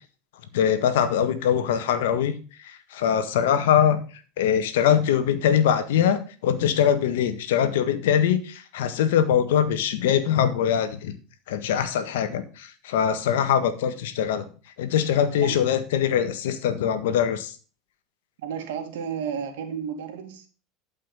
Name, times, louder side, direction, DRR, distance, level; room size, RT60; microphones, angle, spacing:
voice 1, 0.5-2.3 2.6-4.0 4.4-11.1 11.5-14.5 14.8-17.5, left 9 dB, 85° left, 10 dB, 1.5 m, -22 dB
voice 2, 18.4-20.5, right 7 dB, 80° right, 6 dB, 2.3 m, -32 dB
12.0 x 5.5 x 5.5 m, 0.37 s
supercardioid pair, 100°, 0 cm